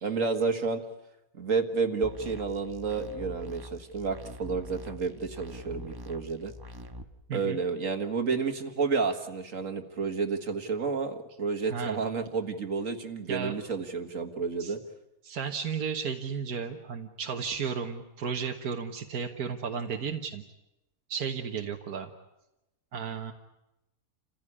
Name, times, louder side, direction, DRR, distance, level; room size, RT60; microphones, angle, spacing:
voice 1, 0.0-0.8 1.4-6.5 7.3-14.8, right 4 dB, 60° right, 6 dB, 2.0 m, -30 dB
sound 1, 2.0-7.0, equal, 15° right, 1.1 m, -44 dB
voice 2, 7.3-7.6 11.7-12.0 13.3-13.5 14.6-14.7 15.2-20.4 21.1-22.1 22.9-23.3, right 6 dB, 80° right, 3 dB, 1.7 m, -34 dB
29.0 x 15.5 x 9.9 m, 0.93 s
omnidirectional pair, 1.6 m